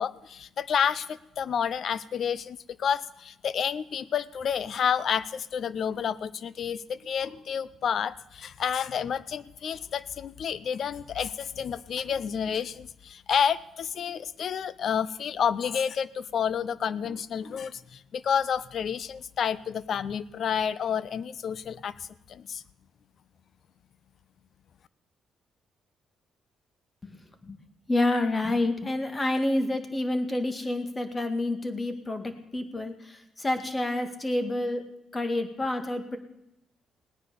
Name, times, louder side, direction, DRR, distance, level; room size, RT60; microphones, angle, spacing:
voice 1, 0.0-22.6, left 7 dB, 60° left, 18 dB, 0.7 m, -30 dB
voice 2, 27.0-27.6 27.9-34.8 35.1-36.2, left 2 dB, 25° left, 8 dB, 2.1 m, -28 dB
18.0 x 9.6 x 6.9 m, 0.87 s
cardioid pair, 90°, 0 cm